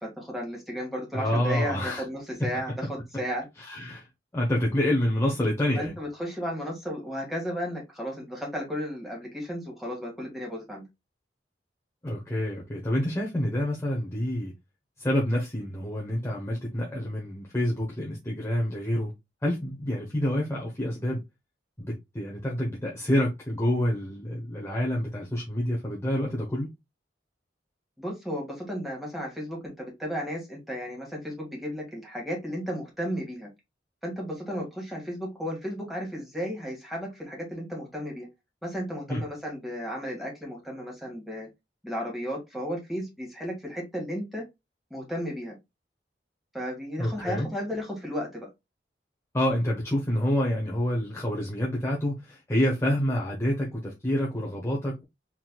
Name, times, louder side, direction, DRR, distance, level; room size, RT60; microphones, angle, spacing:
voice 1, 0.0-3.5 5.7-10.8 28.0-33.5 34.0-38.3 38.6-41.5 41.8-44.4 44.9-45.5 46.5-48.5, equal, ahead, 2.1 m, -34 dB
voice 2, 1.1-2.0 3.6-4.1 4.3-5.9 12.0-14.5 15.0-19.1 19.4-21.2 21.8-26.7 39.1-39.2 47.0-47.5 49.3-55.0, left 1 dB, 15° left, 1.0 m, -27 dB
4.4 x 3.9 x 2.4 m
head